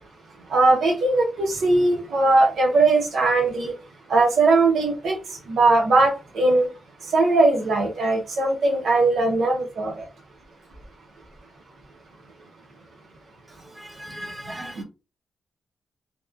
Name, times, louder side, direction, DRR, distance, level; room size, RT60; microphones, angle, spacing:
voice 1, 0.5-3.7 4.1-5.2 5.5-6.7 7.1-9.9, right 2 dB, 75° right, 0.7 m, -19 dB
voice 2, 13.8-14.8, right 1 dB, 30° right, 0.7 m, -37 dB
2.8 x 2.2 x 2.3 m
cardioid pair, 100°, 0 cm